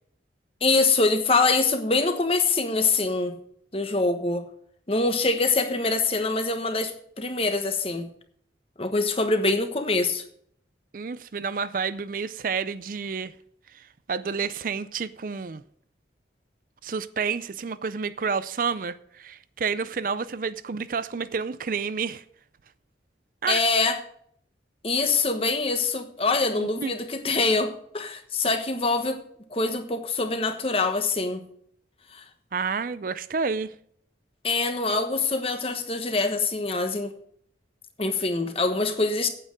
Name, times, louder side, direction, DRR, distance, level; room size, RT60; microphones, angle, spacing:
voice 1, 0.6-3.4 3.7-4.5 4.9-8.1 8.8-10.2 23.5-24.0 24.8-29.2 29.5-31.4 32.1-32.2 34.4-37.1 38.0-39.3, left 3 dB, 30° left, 1.2 m, -24 dB
voice 2, 10.9-13.3 13.7-15.6 16.8-22.2 23.4-23.6 26.6-26.9 32.5-33.7, right 5 dB, 45° right, 0.4 m, -30 dB
8.8 x 8.7 x 6.4 m
head